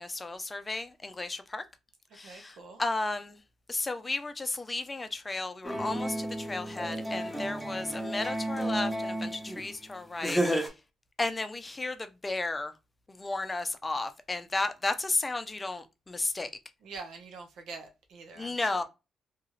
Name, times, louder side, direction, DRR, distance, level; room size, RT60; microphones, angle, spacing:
voice 1, 0.0-1.6 2.1-3.4 3.7-10.7 11.2-12.7 13.1-16.5 18.4-18.8, left 2 dB, 25° left, 0.5 m, -33 dB
voice 2, 2.2-2.8 16.8-18.8, right 4 dB, 80° right, 0.8 m, -45 dB
sound 1, 5.6-9.7 10.2-10.7, right 1 dB, 5° right, 0.9 m, -32 dB
2.9 x 2.3 x 3.1 m
cardioid pair, 75°, 0 cm